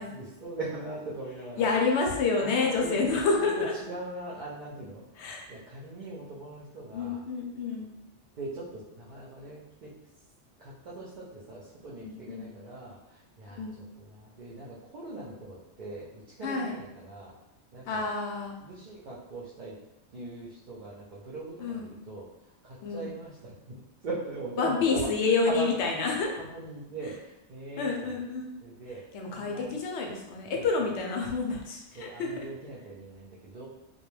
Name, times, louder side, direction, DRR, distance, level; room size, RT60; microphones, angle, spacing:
voice 1, 0.0-1.7 2.4-3.0 3.4-5.0 5.5-7.2 8.3-9.9 10.6-17.3 17.7-18.1 18.6-19.8 20.1-25.1 25.4-26.0 26.4-28.2 28.6-29.8 30.5-30.7 31.9-33.7, right 2 dB, 55° right, -6 dB, 0.6 m, -41 dB
voice 2, 1.6-3.7 5.2-5.5 6.9-7.9 12.0-12.5 13.5-13.8 16.4-16.7 17.9-18.6 21.6-21.9 22.8-23.1 24.6-26.3 27.8-28.5 29.1-32.3, left 4 dB, 80° left, 1 dB, 0.9 m, -28 dB
2.3 x 2.2 x 3.1 m, 0.94 s
omnidirectional pair, 1.2 m